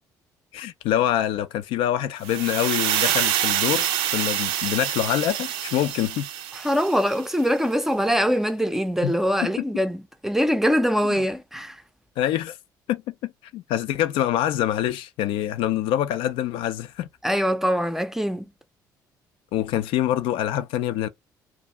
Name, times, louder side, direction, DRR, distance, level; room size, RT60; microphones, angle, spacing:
voice 1, 0.5-6.3 9.0-9.1 9.4-9.5 11.1-11.2 12.2-12.6 12.9-17.1 19.5-21.1, left 12 dB, 60° left, 0.4 m, -25 dB
sound 1, 2.2-7.3, right 11 dB, 65° right, 0.4 m, -26 dB
voice 2, 6.6-11.8 17.2-18.4, equal, 5° right, 0.5 m, -23 dB
2.6 x 2.5 x 4.1 m
figure-of-eight pair, 50°, 10 cm